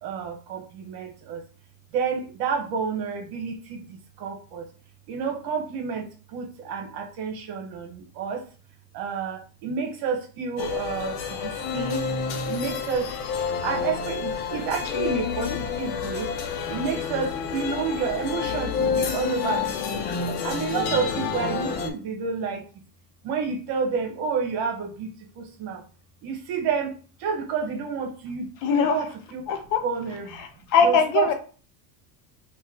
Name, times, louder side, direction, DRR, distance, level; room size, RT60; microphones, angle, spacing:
voice 1, 0.0-1.4 1.9-4.7 5.1-8.4 8.9-12.1 12.4-13.1 13.6-16.4 16.7-20.1 20.4-22.6 23.2-25.1 25.3-25.8 26.2-26.9 27.2-29.4 29.8-30.4 30.8-31.3, right 6 dB, 60° right, 3 dB, 1.2 m, -30 dB
sound 1, 10.6-21.9, left 6 dB, 65° left, 0.9 m, -29 dB
voice 2, 28.6-29.0 29.5-29.8 30.4-31.3, left 6 dB, 45° left, 6 dB, 0.6 m, -21 dB
3.1 x 2.6 x 3.8 m, 0.39 s
supercardioid pair, 145°, 48 cm